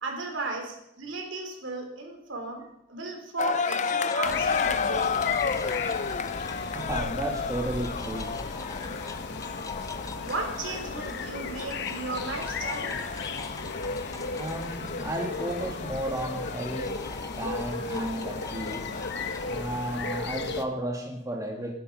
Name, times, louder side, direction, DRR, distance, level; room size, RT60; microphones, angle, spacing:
voice 1, 0.0-5.2 10.2-12.9, right 3 dB, 70° right, 3 dB, 3.8 m, -35 dB
sound 1, 3.4-20.2, left 5 dB, 40° left, 0.5 m, -34 dB
sound 2, 3.8-7.2 7.5-19.6, left 4 dB, 15° left, 0.9 m, -44 dB
sound 3, 4.2-20.6, left 4 dB, 60° left, 1.2 m, -35 dB
voice 2, 6.7-8.4 14.3-17.0 17.4-18.9 19.4-21.7, right 1 dB, 15° right, 0 dB, 2.3 m, -33 dB
18.5 x 11.5 x 5.5 m, 0.77 s
head